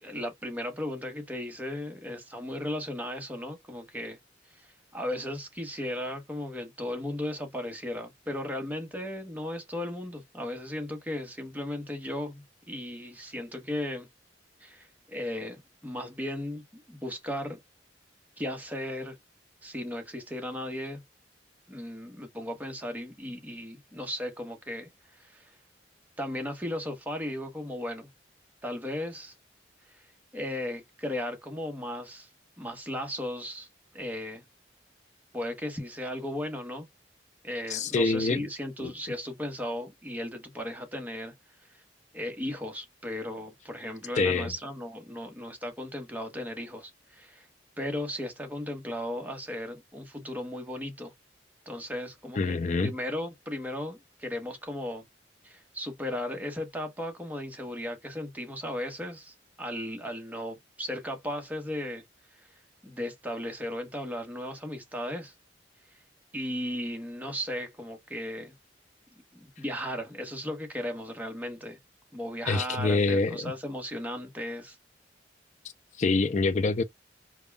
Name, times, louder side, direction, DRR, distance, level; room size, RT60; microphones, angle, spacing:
voice 1, 0.0-4.2 4.5-14.1 14.6-17.6 18.4-19.2 19.6-21.0 21.7-25.5 26.2-28.1 28.6-29.3 29.9-30.0 30.3-32.3 32.6-33.7 33.9-34.4 35.3-36.9 37.4-41.3 41.7-41.8 42.1-47.5 47.8-51.1 51.7-55.0 55.4-62.0 62.4-62.5 62.8-65.3 66.3-68.5 69.3-71.8 72.1-74.8, left 1 dB, 10° right, 1.0 m, -36 dB
voice 2, 37.7-38.4 38.8-38.9 44.2-44.5 52.4-52.9 72.5-73.5 76.0-76.8, left 3 dB, 40° left, 0.4 m, -26 dB
5.2 x 2.2 x 2.3 m
head